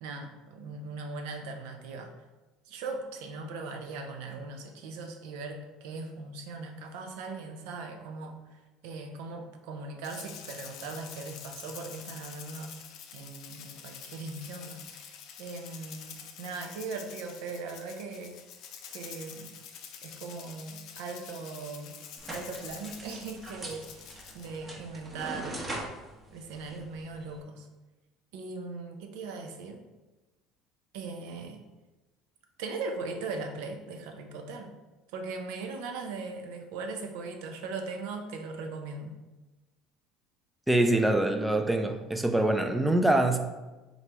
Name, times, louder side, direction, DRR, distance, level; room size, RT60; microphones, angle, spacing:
voice 1, 0.0-2.1 2.7-8.4 8.8-12.8 13.1-18.4 18.9-19.5 20.0-21.9 22.3-25.6 26.3-27.7 28.3-29.8 30.9-31.6 32.6-34.7 35.1-39.2, right 3 dB, 80° right, 5 dB, 0.6 m, -39 dB
Rattle (instrument), 10.0-24.6, left 8 dB, 60° left, 0.5 m, -47 dB
sound 1, 22.2-27.4, right 1 dB, 20° right, 0.8 m, -42 dB
voice 2, 40.7-43.4, right 1 dB, 5° right, 6 dB, 0.4 m, -24 dB
3.9 x 3.1 x 3.3 m, 1.1 s
cardioid pair, 125°, 0 cm